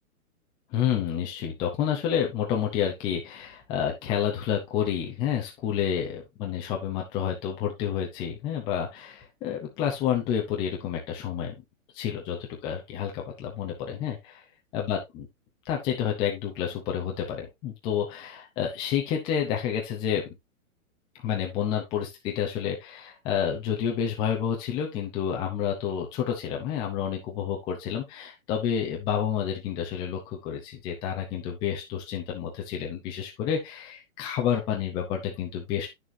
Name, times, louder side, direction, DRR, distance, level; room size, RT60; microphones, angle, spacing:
voice 1, 0.7-11.5 11.9-14.4 14.7-15.3 15.7-20.3 21.2-35.9, left 9 dB, 10° left, 0 dB, 0.6 m, -29 dB
9.0 x 6.5 x 2.7 m, 0.19 s
hypercardioid pair, 155°, 44 cm